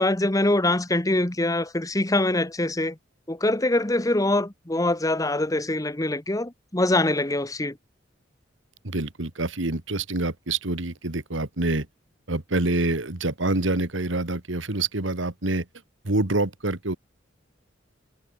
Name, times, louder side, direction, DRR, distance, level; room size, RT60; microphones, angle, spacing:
voice 1, 0.0-3.0 3.3-7.8, left 1 dB, 20° left, 1.3 m, -24 dB
voice 2, 8.8-11.9 12.3-15.7 16.0-17.0, right 2 dB, 85° right, 2.1 m, -26 dB
head